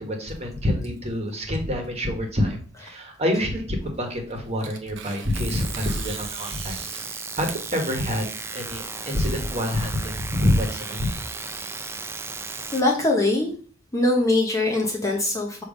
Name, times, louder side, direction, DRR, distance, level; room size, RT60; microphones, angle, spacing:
voice 1, 0.0-6.7 7.0-11.1, left 1 dB, 30° right, 3 dB, 1.5 m, -27 dB
Tearing, 3.9-10.7, right 6 dB, 55° right, 0.8 m, -42 dB
sound 1, 5.3-12.8, right 4 dB, 10° right, 0.4 m, -35 dB
voice 2, 6.7-7.1 12.7-13.5 13.9-15.6, left 2 dB, 15° left, -1 dB, 0.9 m, -23 dB
6.9 x 3.2 x 5.1 m, 0.42 s
head